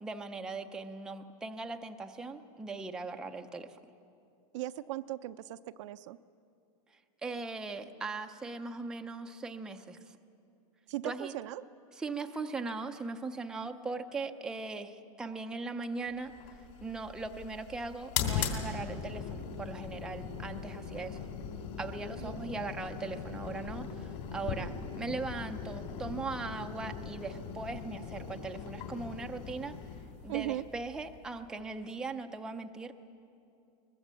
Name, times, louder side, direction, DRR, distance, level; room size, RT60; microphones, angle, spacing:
voice 1, 0.0-3.8 7.2-10.2 11.0-11.3 11.9-16.3 16.8-21.2 21.8-29.8 30.2-32.9, right 3 dB, 5° right, 4 dB, 0.5 m, -39 dB
voice 2, 4.5-6.2 10.9-11.6 22.2-22.6 30.3-30.6, right 15 dB, 50° right, 12 dB, 0.5 m, -38 dB
sound 1, 16.3-31.6, left 7 dB, 45° left, 3.1 m, -40 dB
23.0 x 21.0 x 7.5 m, 2.6 s
supercardioid pair, 165°, 20 cm